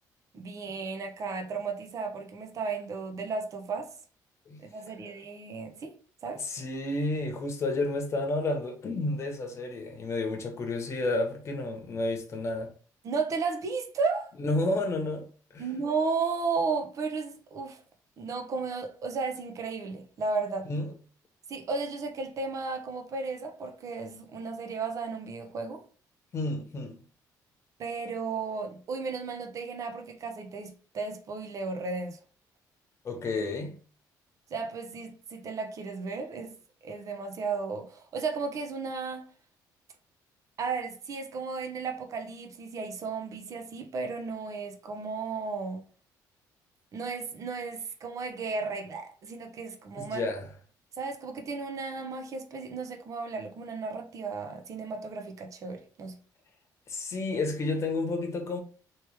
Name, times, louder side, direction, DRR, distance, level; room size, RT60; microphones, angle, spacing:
voice 1, 0.3-3.9 4.6-6.5 13.0-14.3 15.6-17.8 18.2-20.7 21.5-25.8 27.8-32.2 34.5-36.6 36.8-39.2 40.6-45.8 46.9-50.2 50.9-56.2, right 4 dB, 45° right, 0.8 m, -34 dB
voice 2, 6.4-12.7 14.4-15.6 20.7-20.9 26.3-27.0 33.0-33.8 50.0-50.4 56.9-58.6, left 2 dB, 40° left, 1.0 m, -31 dB
3.1 x 3.1 x 3.3 m
cardioid pair, 120°, 7 cm